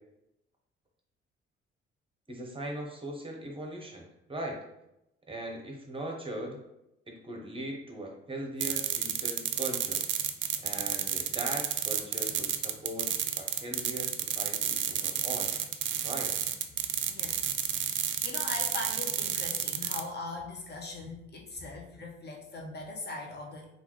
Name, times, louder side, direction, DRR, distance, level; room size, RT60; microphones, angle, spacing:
voice 1, 2.3-4.6 5.3-6.6 7.1-10.1 10.6-13.1 13.4-15.5 16.0-16.3, right 1 dB, 15° right, 0 dB, 0.9 m, -39 dB
sound 1, 8.6-20.0, right 9 dB, 40° right, 0.4 m, -31 dB
voice 2, 17.1-17.4 17.9-23.7, left 2 dB, 35° left, -1 dB, 0.7 m, -40 dB
3.6 x 2.5 x 3.0 m, 0.85 s
figure-of-eight pair, 45°, 30 cm